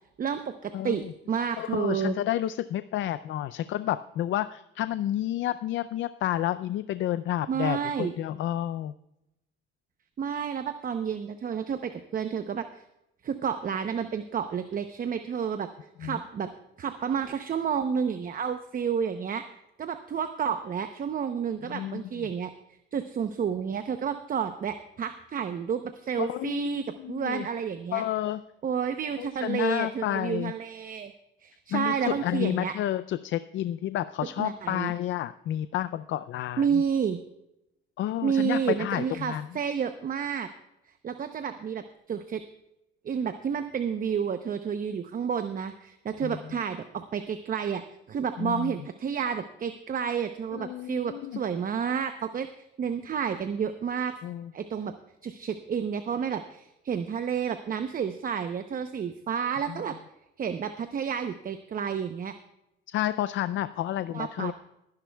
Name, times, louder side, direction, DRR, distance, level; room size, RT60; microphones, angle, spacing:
voice 1, 0.2-2.2 7.5-8.1 10.2-12.8 13.2-15.7 16.0-16.5 16.8-19.4 19.8-22.5 22.9-28.0 28.6-31.1 31.4-32.7 34.4-34.9 36.6-37.2 38.2-40.5 41.0-42.4 43.0-47.8 48.1-54.1 54.5-54.9 55.2-60.0 60.4-62.3 64.1-64.5, right 7 dB, 45° right, 9 dB, 0.7 m, -30 dB
voice 2, 0.7-1.1 1.6-8.9 16.0-16.2 21.7-22.3 26.2-27.5 27.9-28.4 29.2-30.5 31.7-36.8 38.0-39.5 46.2-46.4 48.4-48.7 50.5-51.4 54.2-54.5 59.7-59.8 62.9-64.5, left 12 dB, 75° left, 14 dB, 0.4 m, -30 dB
21.5 x 10.5 x 2.3 m, 0.86 s
cardioid pair, 90°, 20 cm